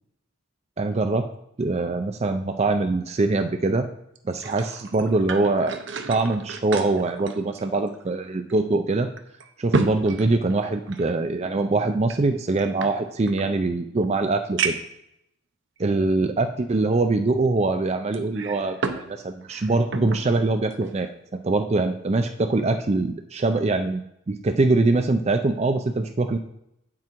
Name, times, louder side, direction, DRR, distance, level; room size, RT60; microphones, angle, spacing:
voice 1, 0.8-1.3 1.6-3.9 4.2-5.8 6.1-9.1 9.6-14.8 15.8-21.1 21.4-24.0 24.3-26.4, right 3 dB, 30° right, 7 dB, 0.4 m, -23 dB
sound 1, 4.1-8.2 8.5-8.6 9.2-11.2 12.0-13.5 14.0-14.1 14.6-15.0 15.8-15.9 18.1-19.1 19.4-20.3 20.7-20.9, right 4 dB, 60° right, 0.7 m, -31 dB
8.6 x 6.1 x 4.5 m, 0.80 s
head